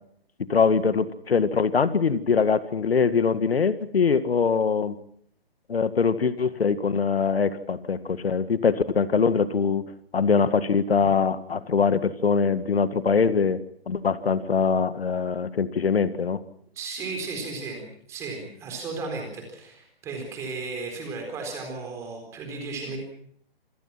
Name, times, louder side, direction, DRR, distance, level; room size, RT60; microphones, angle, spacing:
voice 1, 0.5-5.0 5.7-9.8 10.1-13.6 13.9-16.4, left 5 dB, 80° left, 12 dB, 1.9 m, -23 dB
voice 2, 16.7-23.0, right 3 dB, 10° right, 3 dB, 4.1 m, -35 dB
27.5 x 18.0 x 5.8 m, 0.67 s
hypercardioid pair, 170°, 30 cm